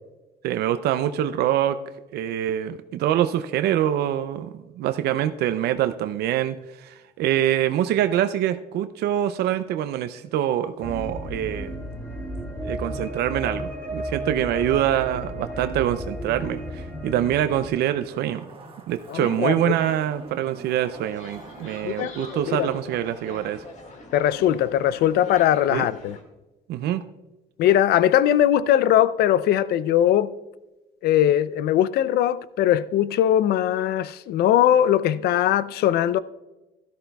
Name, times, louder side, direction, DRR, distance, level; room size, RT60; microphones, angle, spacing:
voice 1, 0.4-1.8 2.1-11.8 12.6-18.4 18.9-23.6 25.7-25.8 26.7-27.0, right 11 dB, 75° right, 0.5 m, -25 dB
sound 1, 10.8-17.7, right 1 dB, 10° left, 1.8 m, -33 dB
Zipper (clothing), 16.1-23.7 24.0-24.1, right 4 dB, 30° right, 1.4 m, -48 dB
voice 2, 19.1-19.8 21.8-22.1 22.5-22.7 24.1-26.2 27.6-30.3 31.0-36.2, left 11 dB, 70° left, 0.4 m, -20 dB
sound 2, 20.8-26.2, left 2 dB, 45° left, 1.9 m, -42 dB
13.0 x 12.5 x 2.3 m
cardioid pair, 110°, 17 cm